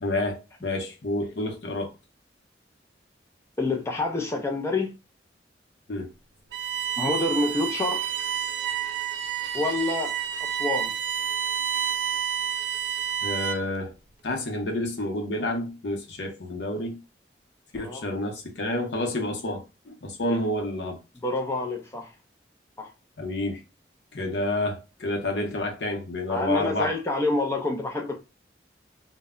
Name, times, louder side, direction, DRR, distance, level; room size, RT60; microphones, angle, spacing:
voice 1, 0.0-1.9 5.9-6.1 13.2-13.9 14.2-17.0 17.7-21.0 23.2-23.6 24.1-26.9, left 1 dB, 80° left, 0.7 m, -29 dB
voice 2, 3.6-4.9 7.0-8.1 9.5-10.2 10.5-10.9 17.7-18.0 21.2-22.1 22.8-22.9 26.3-28.2, left 2 dB, 15° left, 0.4 m, -27 dB
Bowed string instrument, 6.5-13.8, right 9 dB, 90° right, 0.4 m, -29 dB
2.1 x 2.1 x 3.6 m
head